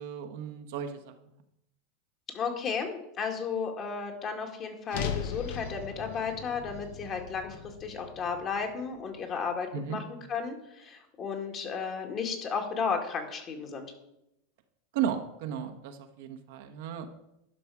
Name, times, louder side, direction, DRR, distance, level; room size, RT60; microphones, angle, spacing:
voice 1, 0.0-1.3 9.7-10.0 14.9-17.1, right 8 dB, 70° right, 6 dB, 1.1 m, -35 dB
voice 2, 2.3-7.6 7.8-13.9, left 5 dB, 40° left, 3 dB, 2.0 m, -34 dB
sound 1, 4.9-9.2, left 8 dB, 70° left, 1.0 m, -38 dB
11.5 x 5.8 x 4.9 m, 0.83 s
hypercardioid pair, 105°, 0 cm